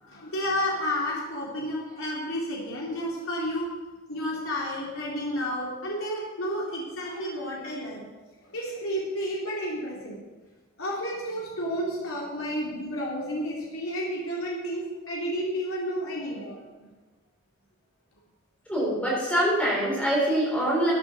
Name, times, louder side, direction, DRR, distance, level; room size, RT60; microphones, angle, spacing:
voice 1, 0.0-3.7 4.1-8.0 8.4-10.2 10.8-16.6, equal, 75° left, -5 dB, 3.9 m, -31 dB
voice 2, 18.7-20.9, right 1 dB, 5° left, -6 dB, 4.4 m, -24 dB
15.5 x 8.8 x 6.8 m, 1.2 s
head